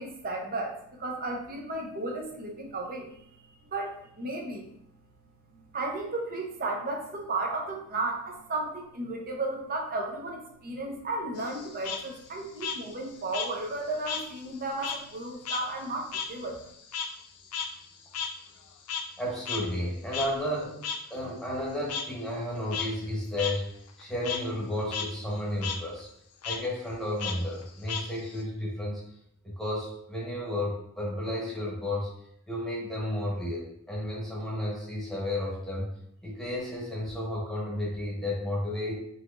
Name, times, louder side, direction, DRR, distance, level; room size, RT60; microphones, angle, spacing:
voice 1, 0.0-3.1 3.7-3.9 4.2-4.7 5.5-16.6, right 2 dB, 40° right, 1 dB, 0.7 m, -34 dB
Frog, 11.4-14.3 14.6-19.2 19.5-19.6 20.1-20.3 20.8-21.0 21.9-22.0 22.6-22.9 23.4-23.5 23.9-24.4 24.8-25.1 25.4-25.8 26.4-26.6 27.2-28.4, left 6 dB, 90° left, 0.5 m, -35 dB
voice 2, 19.2-20.8 21.1-23.7 24.0-26.1 26.4-29.0 29.4-32.1 32.5-35.9 36.2-39.0, left 1 dB, ahead, -6 dB, 1.0 m, -32 dB
4.1 x 2.9 x 2.5 m, 0.72 s
head